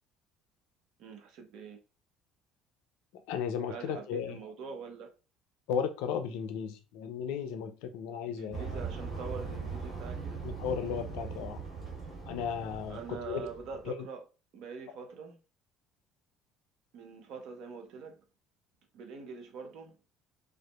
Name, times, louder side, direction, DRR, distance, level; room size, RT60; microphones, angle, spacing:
voice 1, 1.0-1.8 3.7-5.1 8.3-10.4 12.9-14.2 14.5-15.4 16.9-18.2 18.9-19.9, right 5 dB, 60° right, 0.6 m, -44 dB
voice 2, 3.3-4.4 5.7-8.8 10.4-11.6 12.3-13.5 13.9-14.1, left 7 dB, 70° left, 0.3 m, -35 dB
sound 1, 8.5-13.9, right 4 dB, 35° right, 1.4 m, -40 dB
2.5 x 2.4 x 2.3 m
hypercardioid pair, 60°, 0 cm